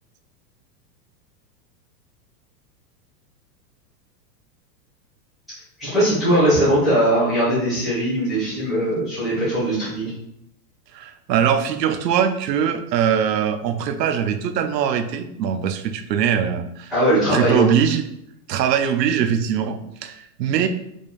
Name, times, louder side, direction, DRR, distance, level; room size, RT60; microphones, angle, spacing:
voice 1, 5.8-10.1 16.9-17.7, right 1 dB, ahead, -22 dB, 0.3 m, -20 dB
voice 2, 10.9-16.9 17.3-18.0 18.5-20.7, right 8 dB, 80° right, 8 dB, 0.7 m, -21 dB
5.1 x 3.6 x 2.5 m, 0.78 s
supercardioid pair, 170°, 49 cm